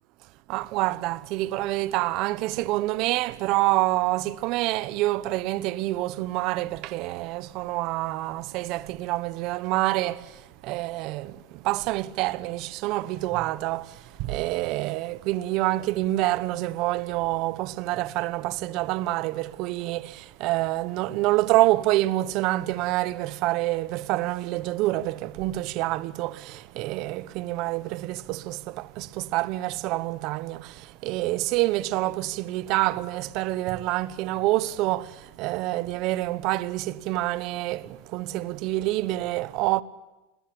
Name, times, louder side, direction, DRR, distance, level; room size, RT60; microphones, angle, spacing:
voice 1, 0.5-39.8, right 17 dB, 40° right, 1.1 m, -27 dB
29.0 x 21.0 x 8.8 m
supercardioid pair, 170°, 0 cm